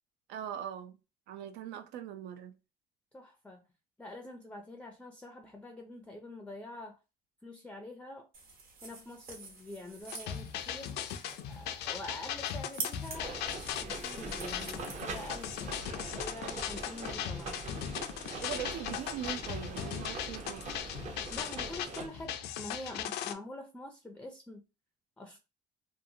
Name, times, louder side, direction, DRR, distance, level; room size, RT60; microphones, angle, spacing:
voice 1, 0.3-1.0 1.3-2.5 18.4-20.6, right 9 dB, 85° right, 0.5 m, -41 dB
voice 2, 3.1-3.6 4.0-7.0 7.4-8.3 8.8-13.4 13.7-17.6 21.3-24.6 25.2-25.4, left 2 dB, 10° left, 0.4 m, -46 dB
sound 1, 8.3-15.8, right 3 dB, 60° right, 1.2 m, -47 dB
sound 2, 10.0-23.3, left 9 dB, 75° left, 0.4 m, -38 dB
sound 3, 13.1-22.1, right 3 dB, 45° right, 0.7 m, -43 dB
2.6 x 2.4 x 2.7 m
cardioid pair, 110°, 17 cm